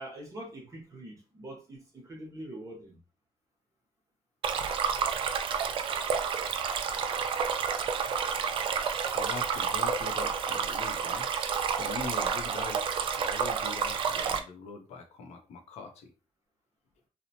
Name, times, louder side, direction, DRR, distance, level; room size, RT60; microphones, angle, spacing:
voice 1, 0.0-3.0 8.1-8.2, right 1 dB, 30° right, -1 dB, 0.8 m, -44 dB
Stream, 4.4-14.4, right 6 dB, 50° right, 0.3 m, -30 dB
voice 2, 9.1-11.3 11.7-12.8 13.2-16.1, left 4 dB, 75° left, 4 dB, 0.6 m, -42 dB
2.8 x 2.0 x 2.8 m, 0.32 s
cardioid pair, 140°, 11 cm